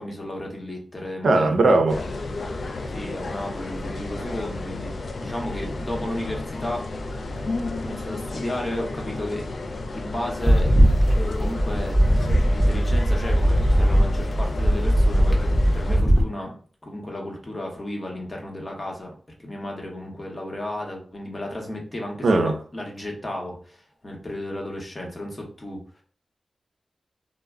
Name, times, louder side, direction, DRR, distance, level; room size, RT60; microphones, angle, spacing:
voice 1, 0.0-1.8 2.9-6.9 7.8-9.5 9.9-10.7 11.1-16.6 16.8-19.1 19.4-25.8, left 1 dB, 30° left, 0.9 m, -33 dB
voice 2, 1.2-2.0 22.2-22.5, right 2 dB, 75° right, 0.4 m, -18 dB
sound 1, 1.9-16.0, left 2 dB, 60° left, 0.3 m, -33 dB
sound 2, 10.4-16.2, equal, 5° right, 0.8 m, -19 dB
2.2 x 2.0 x 3.5 m
wide cardioid pair, 75°, 0 cm